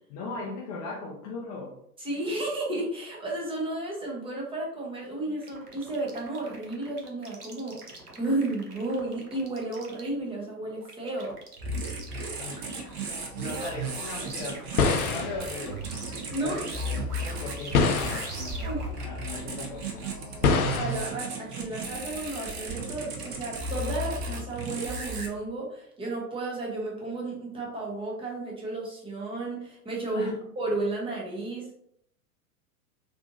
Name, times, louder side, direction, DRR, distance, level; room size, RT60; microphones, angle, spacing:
voice 1, 0.1-1.7 12.4-12.8 13.3-14.7 15.1-15.8 16.4-18.7 19.0-20.5 30.1-30.4, left 3 dB, 25° left, -3 dB, 0.5 m, -38 dB
voice 2, 2.0-11.4 13.5-13.7 16.3-16.6 18.6-18.8 20.5-31.7, right 2 dB, 10° right, -3 dB, 0.7 m, -33 dB
sound 1, 5.4-15.0 15.3-19.0, right 3 dB, 85° right, 0.8 m, -46 dB
sound 2, 11.6-25.3, right 2 dB, 40° right, 0.8 m, -35 dB
sound 3, 12.8-21.0, left 4 dB, 70° left, 0.6 m, -29 dB
3.5 x 2.6 x 2.4 m, 0.70 s
figure-of-eight pair, 95°, 45 cm